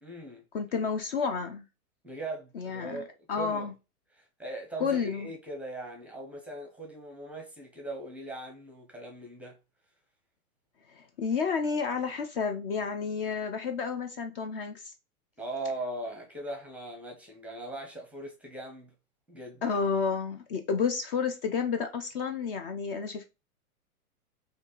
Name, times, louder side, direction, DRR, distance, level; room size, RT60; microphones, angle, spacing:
voice 1, 0.0-0.4 2.0-3.7 4.1-9.6 15.4-18.9 19.3-19.8, right 2 dB, 5° right, 0.7 m, -40 dB
voice 2, 0.5-1.6 2.5-3.0 3.3-3.7 4.8-5.3 10.9-14.9 19.6-23.2, left 5 dB, 40° left, 0.5 m, -30 dB
4.3 x 2.6 x 2.9 m
hypercardioid pair, 110°, 44 cm